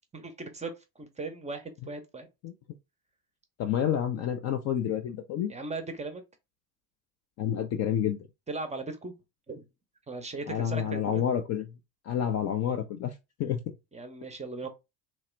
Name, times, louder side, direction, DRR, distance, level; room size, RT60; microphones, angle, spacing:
voice 1, 0.1-2.3 5.5-6.2 8.5-9.1 9.5-9.6 10.1-11.2 13.9-14.7, right 3 dB, 15° right, 0.6 m, -38 dB
voice 2, 3.6-5.5 7.4-8.3 10.5-11.7 12.1-13.1 13.4-13.6, left 9 dB, 35° left, 0.4 m, -29 dB
3.0 x 2.1 x 3.1 m
figure-of-eight pair, 60°, 50 cm